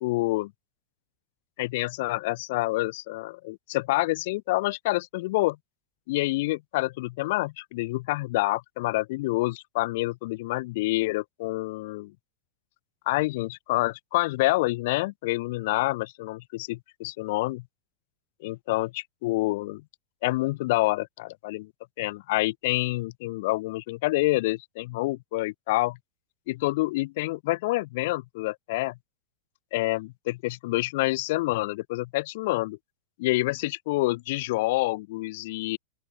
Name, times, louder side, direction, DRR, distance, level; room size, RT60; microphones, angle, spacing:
voice 1, 0.0-0.5 1.6-5.6 6.1-12.1 13.1-17.6 18.4-19.8 20.2-21.7 22.0-26.0 26.5-29.0 29.7-32.8 33.2-35.8, left 20 dB, 50° left, 0.4 m, -27 dB
open air
figure-of-eight pair, 90°, 0 cm